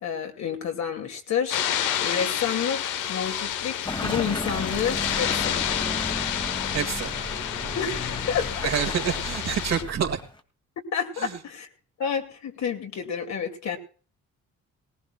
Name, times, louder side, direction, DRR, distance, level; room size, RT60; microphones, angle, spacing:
voice 1, 0.0-1.6 2.0-5.6 7.7-8.5 10.9-11.7 12.0-13.8, left 7 dB, 65° left, 4 dB, 2.4 m, -29 dB
sound 1, 1.5-9.8, left 10 dB, 85° left, 1.0 m, -29 dB
Car passing by / Engine, 3.9-10.4, left 2 dB, 15° left, 1.5 m, -35 dB
sound 2, 4.5-10.2, right 4 dB, 25° right, 0.8 m, -40 dB
voice 2, 6.7-7.1 8.6-10.2 11.2-11.4, right 8 dB, 60° right, 5 dB, 2.0 m, -27 dB
20.0 x 18.0 x 2.3 m, 0.39 s
cardioid pair, 90°, 30 cm